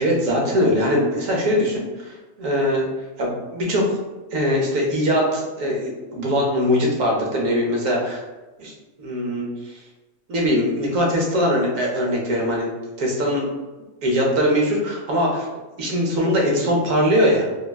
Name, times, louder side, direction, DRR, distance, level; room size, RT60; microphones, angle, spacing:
voice 1, 0.0-2.9 3.2-4.0 4.3-8.2 8.6-8.7 9.0-9.5 10.3-12.7 13.0-13.5 14.0-15.5 15.8-17.5, equal, 75° right, -2 dB, 1.2 m, -21 dB
3.6 x 2.1 x 2.3 m, 1.1 s
omnidirectional pair, 1.4 m